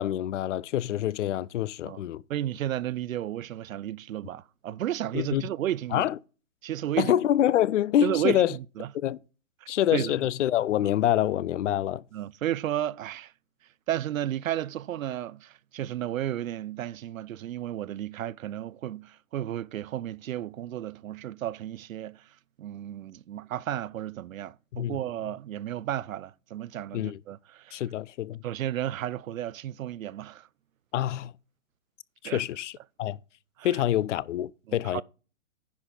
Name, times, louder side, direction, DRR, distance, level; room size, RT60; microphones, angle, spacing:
voice 1, 0.0-2.2 5.1-5.4 5.9-6.2 7.0-8.6 8.9-9.2 9.7-12.0 24.7-25.0 26.9-27.2 27.7-28.4 30.9-31.3 32.2-32.7 33.0-33.2 33.6-35.0, left 12 dB, 65° left, 0.5 m, -26 dB
voice 2, 2.3-6.1 6.6-7.2 8.0-8.9 9.9-10.2 12.1-13.3 13.9-22.2 22.6-27.8 28.4-30.5 32.2-32.4 33.6-33.8 34.7-35.0, right 12 dB, 80° right, 0.5 m, -33 dB
10.5 x 6.3 x 3.8 m
hypercardioid pair, 160°, 40 cm